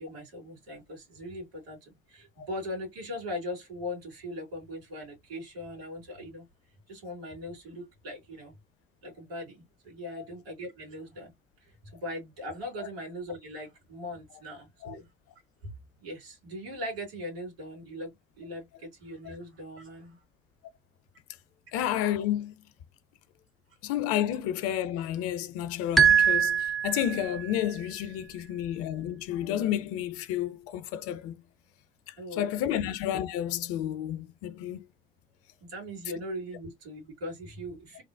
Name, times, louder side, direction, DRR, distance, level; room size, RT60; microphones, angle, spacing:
voice 1, 0.0-6.4 6.9-8.5 9.0-11.3 11.6-15.0 16.0-18.1 18.4-20.2 32.2-32.9 35.6-38.0, left 1 dB, 75° right, 2.5 m, -40 dB
voice 2, 21.7-22.5 23.8-31.4 32.1-34.8, left 11 dB, 50° left, 0.5 m, -31 dB
sound 1, 26.0-27.5, right 7 dB, ahead, 0.4 m, -23 dB
3.6 x 2.0 x 2.5 m
figure-of-eight pair, 50°, 30 cm